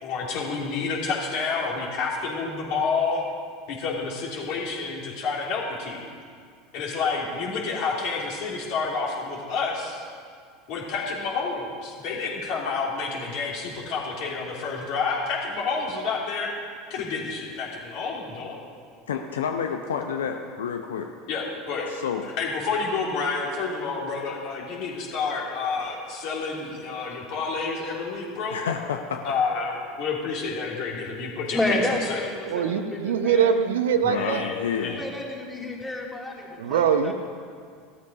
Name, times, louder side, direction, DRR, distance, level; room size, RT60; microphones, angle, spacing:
voice 1, 0.0-3.2 3.7-6.1 6.7-10.0 10.7-16.5 16.9-18.6 21.3-21.9 22.4-28.6 29.2-32.2 34.1-35.0, left 4 dB, 50° left, -2 dB, 3.3 m, -29 dB
voice 2, 19.1-21.1 21.9-22.3 28.5-29.2 34.1-35.0, left 7 dB, 70° left, 5 dB, 0.8 m, -29 dB
voice 3, 31.5-33.5 34.9-37.1, left 1 dB, 10° left, -1 dB, 2.9 m, -30 dB
voice 4, 32.5-34.4 36.6-37.1, right 7 dB, 65° right, 9 dB, 0.8 m, -22 dB
14.5 x 13.0 x 5.3 m, 2.1 s
figure-of-eight pair, 75°, 0 cm